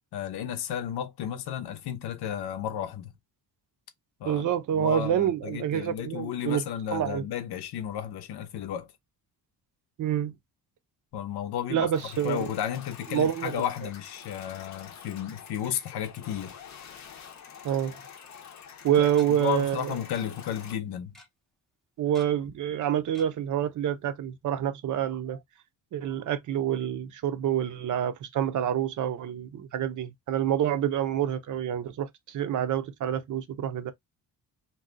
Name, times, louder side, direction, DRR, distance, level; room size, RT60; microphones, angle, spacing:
voice 1, 0.1-3.2 4.2-4.4 4.7-8.9 11.1-16.5 19.0-21.2, left 9 dB, 90° left, 0.8 m, -33 dB
voice 2, 4.2-6.6 6.9-7.2 10.0-10.3 11.7-12.5 13.1-13.6 17.6-17.9 18.8-20.0 22.0-25.4 25.9-33.9, right 10 dB, 55° right, 0.6 m, -27 dB
sound 1, 11.9-20.8, left 7 dB, 45° left, 0.6 m, -47 dB
Tick-tock, 18.2-18.3 19.1-19.3 20.1-20.3 20.5-20.6 20.9-21.3 22.1-22.5 23.1-23.3 23.7-23.8 24.1-24.2, equal, ahead, 0.6 m, -50 dB
2.7 x 2.2 x 3.7 m
cardioid pair, 180°, 38 cm